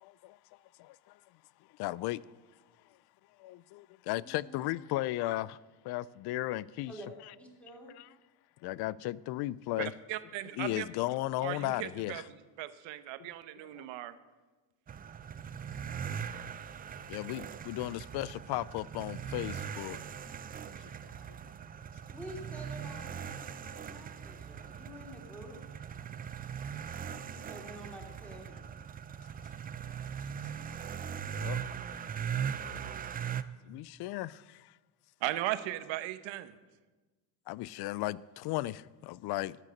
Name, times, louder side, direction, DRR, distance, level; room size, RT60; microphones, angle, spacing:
voice 1, 0.0-0.4 0.8-1.0 1.8-2.2 3.4-5.6 5.8-6.9 8.0-8.1 8.6-9.9 10.6-12.2 13.2-13.3 13.7-13.9 17.1-20.0 21.3-21.4 31.4-31.6 33.7-34.7 37.5-39.6, left 17 dB, 60° left, 0.5 m, -35 dB
voice 2, 4.2-4.6 6.9-7.1 7.4-8.0 22.1-25.6 27.3-28.6, equal, 5° left, 3.2 m, -48 dB
voice 3, 9.8-10.9 11.4-14.2 35.2-36.6, right 15 dB, 75° right, 1.0 m, -37 dB
sound 1, 14.9-33.4, right 8 dB, 20° right, 0.4 m, -40 dB
13.5 x 9.1 x 6.5 m
cardioid pair, 120°, 46 cm